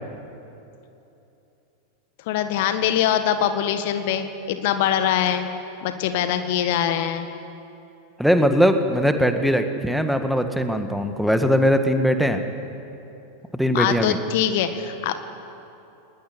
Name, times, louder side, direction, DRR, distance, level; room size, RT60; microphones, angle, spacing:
voice 1, 2.3-5.5 5.8-7.3 13.7-15.2, left 9 dB, 50° left, 9 dB, 1.6 m, -23 dB
voice 2, 8.2-12.4 13.5-14.2, equal, ahead, 7 dB, 1.7 m, -20 dB
21.5 x 19.5 x 9.9 m, 2.9 s
figure-of-eight pair, 90°, 0 cm